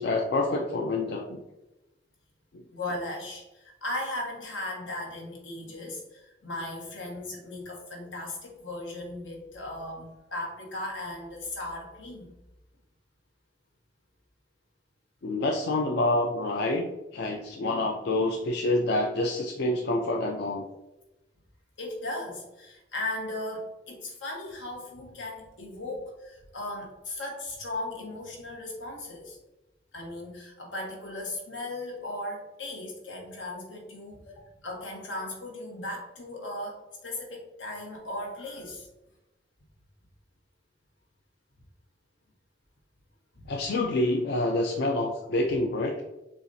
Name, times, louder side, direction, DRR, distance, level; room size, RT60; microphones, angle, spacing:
voice 1, 0.0-1.4 2.5-2.6 15.2-16.9 17.1-20.6 43.5-46.0, left 2 dB, 60° left, 1 dB, 0.4 m, -27 dB
voice 2, 2.7-12.3 21.8-29.4 29.9-34.2 34.6-38.9 43.3-43.5, left 1 dB, 90° left, 0 dB, 1.2 m, -37 dB
6.9 x 2.4 x 2.7 m, 0.99 s
head